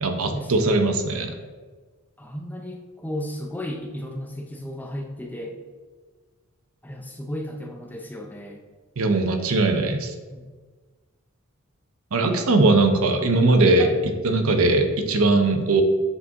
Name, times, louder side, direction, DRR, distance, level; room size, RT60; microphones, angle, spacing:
voice 1, 0.0-1.3 9.0-10.1 12.1-13.9 14.2-15.8, right 2 dB, 70° right, 5 dB, 0.7 m, -20 dB
voice 2, 2.2-5.6 6.8-8.6 10.3-10.5 13.8-14.0, left 1 dB, 10° left, 2 dB, 0.5 m, -34 dB
7.1 x 4.2 x 3.6 m, 1.4 s
head